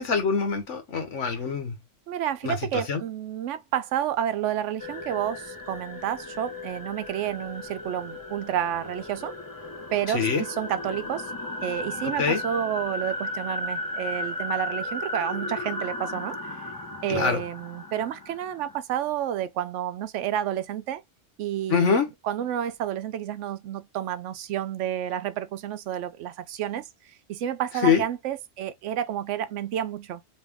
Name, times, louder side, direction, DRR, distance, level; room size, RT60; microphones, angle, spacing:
voice 1, 0.0-1.7 2.4-3.0 10.1-10.5 12.0-12.4 17.1-17.4 21.7-22.1 27.8-28.0, left 6 dB, 90° left, 1.4 m, -24 dB
voice 2, 2.1-9.3 9.9-11.3 11.6-16.6 17.0-21.0 21.4-26.9 27.3-30.2, right 10 dB, 85° right, 0.9 m, -30 dB
sound 1, 4.8-18.8, left 1 dB, 20° left, 0.9 m, -35 dB
3.2 x 2.9 x 3.4 m
omnidirectional pair, 1.2 m